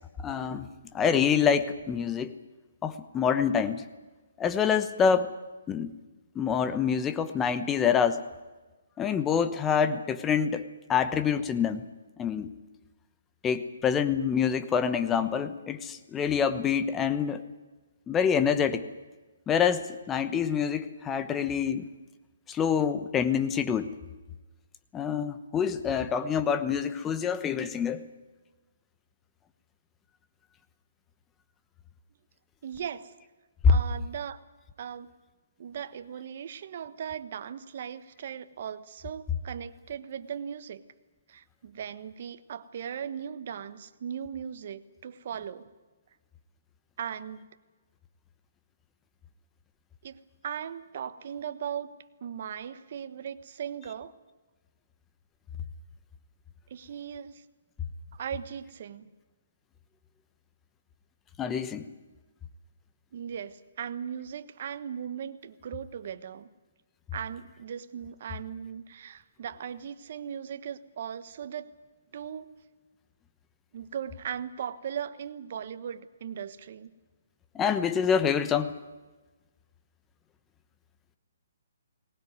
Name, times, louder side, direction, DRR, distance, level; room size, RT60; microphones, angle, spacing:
voice 1, 0.2-0.7 0.9-2.4 2.8-3.9 4.4-5.3 5.7-5.9 6.3-8.2 9.0-10.6 10.9-11.8 12.2-12.5 13.4-17.4 18.1-18.9 19.5-21.9 22.5-23.9 24.9-28.0 33.6-33.7 61.4-61.9 77.5-78.7, left 7 dB, 15° left, 11 dB, 1.1 m, -26 dB
voice 2, 32.6-33.1 33.7-34.4 34.8-35.1 35.6-40.8 41.3-45.7 47.0-47.4 50.0-51.9 52.2-54.1 56.7-57.4 58.1-59.1 63.1-66.5 67.1-71.7 72.1-72.5 73.7-76.9, right 8 dB, 50° right, 12 dB, 1.3 m, -38 dB
19.5 x 18.5 x 9.5 m, 1.2 s
hypercardioid pair, 160°, 0 cm